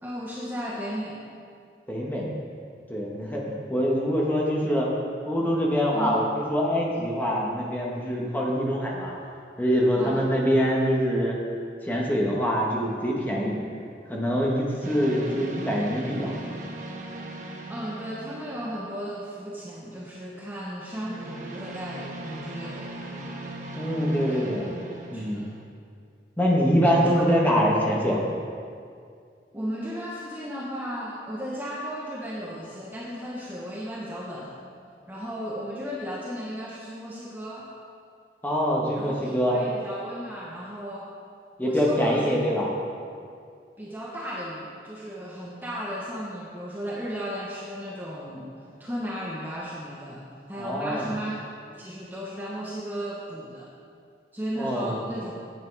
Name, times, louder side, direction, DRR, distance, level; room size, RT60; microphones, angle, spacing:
voice 1, 0.0-1.2 5.9-6.2 10.0-10.3 17.7-23.4 24.3-24.4 25.1-25.5 27.0-27.3 28.1-28.3 29.5-34.5 35.1-37.7 38.9-41.1 41.6-42.3 42.6-42.7 43.8-48.5 48.8-50.2 50.5-51.3 51.7-53.7 54.3-55.3, equal, 10° right, -5 dB, 1.0 m, -35 dB
voice 2, 1.9-2.3 2.9-4.9 5.2-9.1 9.6-11.4 11.8-13.6 14.1-16.3 23.8-24.7 25.1-25.4 26.4-28.2 38.4-39.6 41.6-42.7 50.6-51.1 54.6-55.0, equal, 10° left, -3 dB, 1.5 m, -24 dB
sound 1, 14.8-19.3 20.8-25.6, right 1 dB, 45° right, 1.1 m, -39 dB
9.7 x 8.2 x 4.8 m, 2.3 s
head